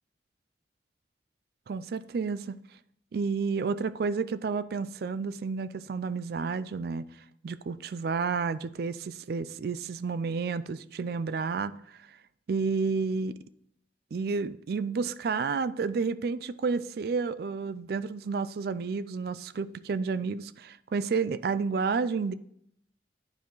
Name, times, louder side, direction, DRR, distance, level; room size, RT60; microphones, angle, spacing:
voice 1, 1.7-2.6 3.1-7.1 7.4-11.7 12.5-13.3 14.1-22.3, right 4 dB, 60° right, 15 dB, 0.4 m, -30 dB
9.7 x 4.6 x 3.9 m, 0.71 s
head